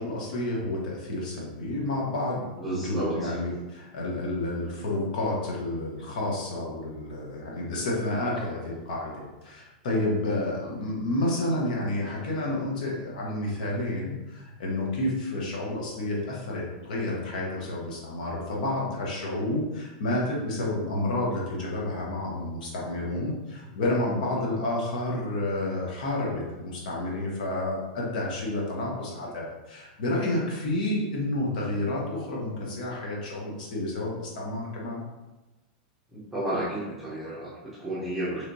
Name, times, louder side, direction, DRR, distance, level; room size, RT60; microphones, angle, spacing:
voice 1, 0.0-35.0, left 1 dB, 70° left, -3 dB, 1.1 m, -30 dB
voice 2, 2.6-3.3 17.4-17.7 36.1-38.4, right 1 dB, ahead, -10 dB, 0.8 m, -32 dB
3.3 x 2.9 x 2.7 m, 1.1 s
supercardioid pair, 155°, 5 cm